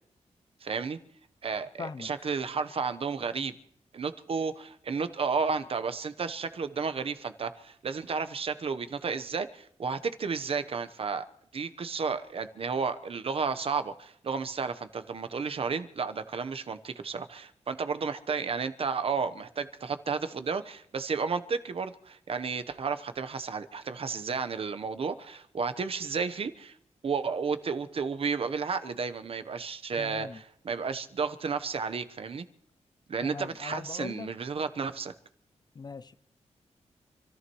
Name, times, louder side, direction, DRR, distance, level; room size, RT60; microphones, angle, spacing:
voice 1, 0.6-1.0 1.4-3.5 3.9-11.2 11.5-26.7 27.0-32.5 33.1-35.1, right 5 dB, 55° right, 1.0 m, -32 dB
voice 2, 1.8-2.1 30.0-30.4 33.2-34.3 35.7-36.2, left 5 dB, 35° left, 0.5 m, -40 dB
28.0 x 14.0 x 3.1 m
wide cardioid pair, 165°, 12 cm